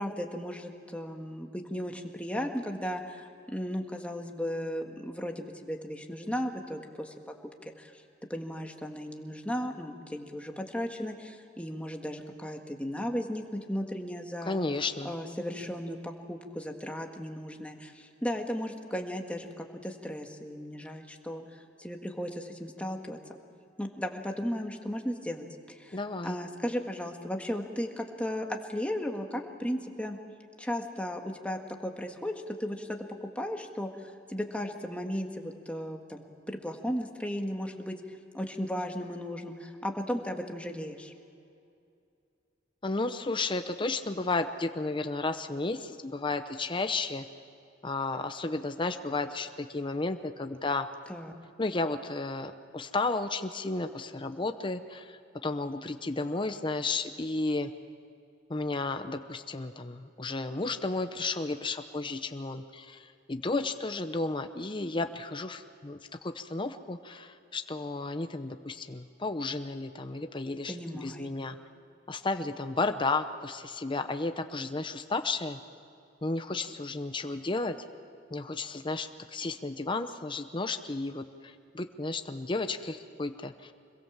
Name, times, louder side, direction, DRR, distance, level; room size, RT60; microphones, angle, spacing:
voice 1, 0.0-7.3 7.8-7.9 8.3-14.6 15.0-23.4 23.8-30.2 30.6-38.0 38.3-41.1 51.1-51.3 70.7-71.3, equal, 5° left, 3 dB, 1.7 m, -35 dB
voice 2, 14.4-15.1 25.9-26.4 42.8-47.3 47.8-50.9 51.6-57.7 58.5-71.6 72.1-75.6 76.2-77.8 78.3-83.7, left 3 dB, 25° left, 8 dB, 0.8 m, -33 dB
25.5 x 22.0 x 7.4 m, 2.5 s
head